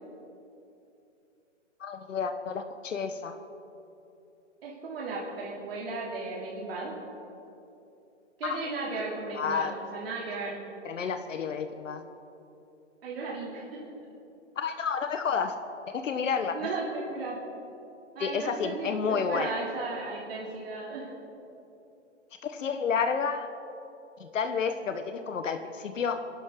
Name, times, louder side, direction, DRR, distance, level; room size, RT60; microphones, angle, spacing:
voice 1, 1.8-3.3 8.4-8.6 9.3-9.7 10.8-12.0 14.6-15.6 15.9-16.6 18.2-19.5 22.4-23.5 24.2-26.2, left 6 dB, 90° left, 7 dB, 1.3 m, -30 dB
voice 2, 4.6-7.0 8.4-10.6 13.0-13.9 16.5-17.4 18.1-21.1, right 3 dB, 50° right, -5 dB, 3.0 m, -35 dB
28.0 x 11.5 x 3.8 m, 2.8 s
hypercardioid pair, 170°, 37 cm